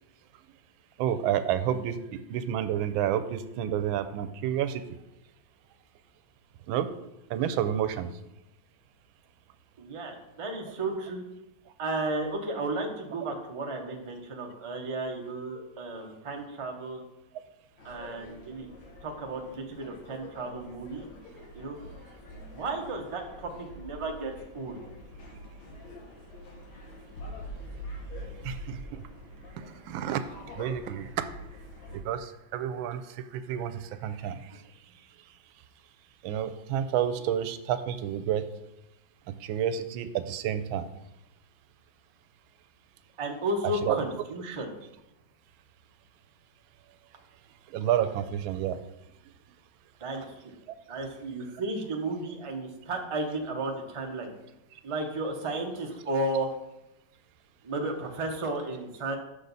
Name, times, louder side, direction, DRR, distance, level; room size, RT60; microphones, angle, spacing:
voice 1, 1.0-1.9 2.3-4.8 6.7-6.9 7.3-8.1 28.4-29.0 29.9-30.2 30.6-31.1 32.1-33.0 33.3-34.4 36.2-38.4 39.4-40.8 43.9-44.0 47.7-48.8, right 10 dB, 90° right, 11 dB, 1.4 m, -29 dB
voice 2, 9.8-11.2 11.8-17.0 17.8-18.7 19.0-21.1 21.5-21.8 22.3-24.8 34.5-34.6 37.2-37.3 43.2-44.7 50.0-50.5 50.9-54.3 54.8-56.5 57.6-59.2, right 2 dB, 35° right, 2 dB, 0.5 m, -33 dB
sound 1, 17.8-32.0, left 1 dB, 80° left, 1.9 m, -45 dB
6.3 x 6.3 x 4.0 m, 0.90 s
omnidirectional pair, 2.1 m